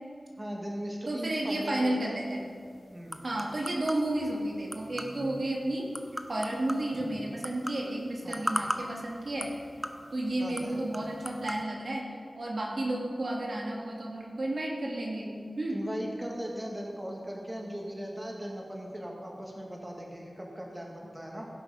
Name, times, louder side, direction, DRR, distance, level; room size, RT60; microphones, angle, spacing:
voice 1, 0.4-2.2 2.9-3.2 8.2-8.5 10.4-10.8 15.7-21.5, equal, 20° right, -1 dB, 1.8 m, -38 dB
voice 2, 1.0-2.4 3.2-5.9 6.3-9.6 10.1-15.8 16.3-16.4, right 1 dB, 60° right, -1 dB, 1.6 m, -32 dB
sound 1, 2.2-11.6, equal, 5° right, 0.7 m, -40 dB
17.0 x 5.9 x 5.4 m, 2.3 s
wide cardioid pair, 85°, 0 cm